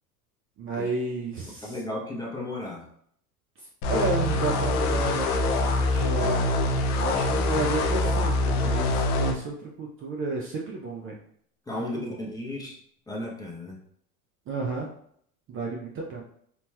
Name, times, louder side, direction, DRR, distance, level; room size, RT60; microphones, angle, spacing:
voice 1, 0.6-1.8 3.6-11.2 11.8-12.1 14.5-14.9 15.5-16.2, right 3 dB, 30° right, -1 dB, 0.4 m, -32 dB
voice 2, 1.6-2.9 11.7-12.8 13.1-13.8, left 1 dB, 10° left, -3 dB, 0.7 m, -34 dB
sound 1, 3.8-9.3, left 2 dB, 75° left, 0.6 m, -24 dB
2.9 x 2.9 x 2.2 m, 0.64 s
hypercardioid pair, 90°, 45 cm